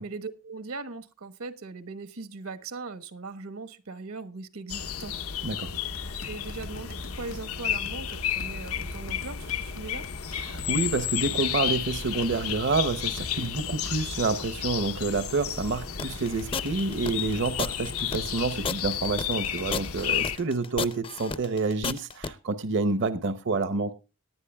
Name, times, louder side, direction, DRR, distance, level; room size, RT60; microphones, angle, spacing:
voice 1, 0.0-5.1 6.2-10.0, right 3 dB, 80° right, 1.2 m, -39 dB
sound 1, 4.7-20.4, left 9 dB, 85° left, 0.9 m, -32 dB
voice 2, 5.4-5.7 10.3-23.9, right 3 dB, 55° right, 0.7 m, -28 dB
sound 2, 5.7-14.4, left 1 dB, 60° left, 1.0 m, -44 dB
sound 3, 16.0-22.3, left 5 dB, 25° left, 0.5 m, -32 dB
18.5 x 10.5 x 2.3 m
head